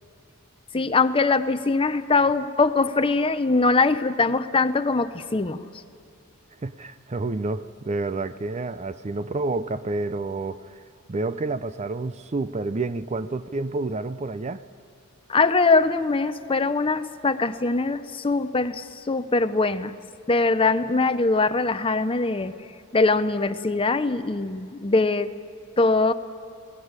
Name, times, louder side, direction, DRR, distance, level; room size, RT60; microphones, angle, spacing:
voice 1, 0.7-5.6 15.3-19.9 20.3-22.5 22.9-25.3 25.8-26.1, left 3 dB, 25° left, 12 dB, 0.7 m, -22 dB
voice 2, 6.6-10.8 11.1-14.6, right 3 dB, 30° right, 13 dB, 0.5 m, -29 dB
21.5 x 18.0 x 9.6 m, 2.5 s
head